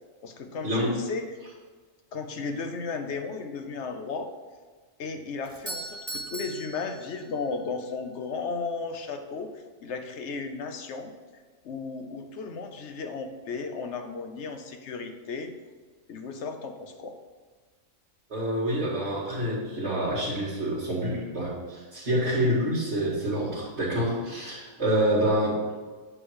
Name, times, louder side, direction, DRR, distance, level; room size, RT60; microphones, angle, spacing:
voice 1, 0.2-1.4 2.1-4.3 5.0-9.5 9.8-11.1 11.6-15.5 16.1-17.2, left 4 dB, 60° left, 6 dB, 1.0 m, -34 dB
Doorbell, 5.4-7.6, right 2 dB, 20° right, 0.3 m, -39 dB
voice 2, 18.3-25.7, right 1 dB, 50° right, -10 dB, 2.2 m, -27 dB
8.9 x 3.3 x 6.3 m, 1.4 s
omnidirectional pair, 1.4 m